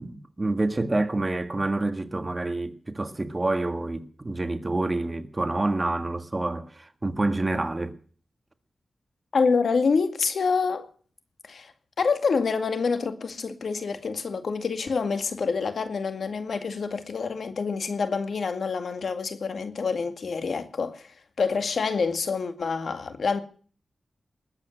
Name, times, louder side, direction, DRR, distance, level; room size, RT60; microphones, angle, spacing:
voice 1, 0.0-7.9, right 2 dB, 25° right, 1.7 m, -28 dB
voice 2, 9.3-10.9 11.4-11.7 12.0-23.4, left 5 dB, 70° left, 2.1 m, -27 dB
20.0 x 8.6 x 7.9 m
wide cardioid pair, 85°, 0 cm